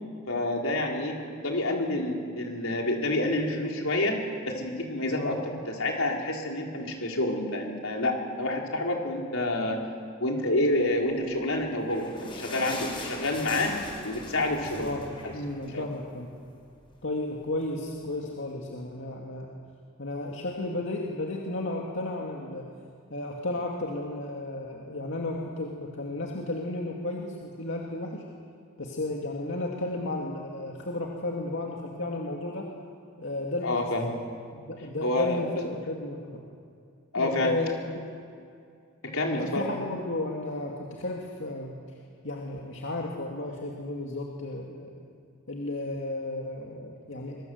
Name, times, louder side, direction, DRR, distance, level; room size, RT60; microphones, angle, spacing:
voice 1, 0.3-4.2 4.4-9.8 10.2-13.7 14.0-14.9 15.2-15.3 15.7-15.9 33.6-34.1 35.0-35.7 37.1-37.5 39.0-39.7, left 1 dB, 80° left, 0 dB, 4.4 m, -28 dB
voice 2, 5.1-5.4 14.8-16.3 17.0-19.5 20.0-22.7 23.1-28.2 28.8-32.7 33.2-34.3 34.5-36.4 37.2-38.1 39.4-41.7 42.2-44.9 45.5-47.4, left 2 dB, 60° left, -1 dB, 2.4 m, -33 dB
sound 1, 11.4-16.2 16.5-16.6 16.9-17.1 17.8-17.9, left 2 dB, 25° left, 5.5 m, -40 dB
25.0 x 24.0 x 8.0 m, 2.3 s
head